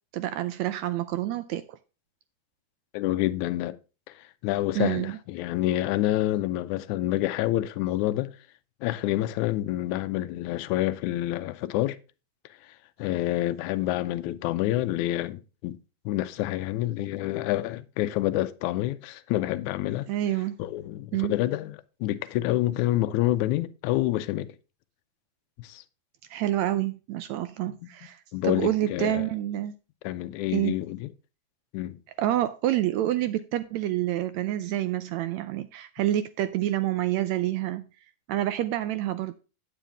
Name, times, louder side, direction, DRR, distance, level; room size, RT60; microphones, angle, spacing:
voice 1, 0.1-1.8 4.7-5.2 20.1-20.6 21.1-21.3 26.3-29.7 30.5-30.7 32.2-37.9 38.3-39.3, right 13 dB, 80° right, 1.6 m, -28 dB
voice 2, 2.9-3.8 4.1-4.2 4.4-8.4 8.8-12.0 13.0-15.8 16.1-20.1 20.6-24.5 25.6-25.8 28.3-29.3 30.0-31.1 31.7-32.0, left 15 dB, 80° left, 1.9 m, -28 dB
8.9 x 8.3 x 3.4 m
omnidirectional pair, 3.7 m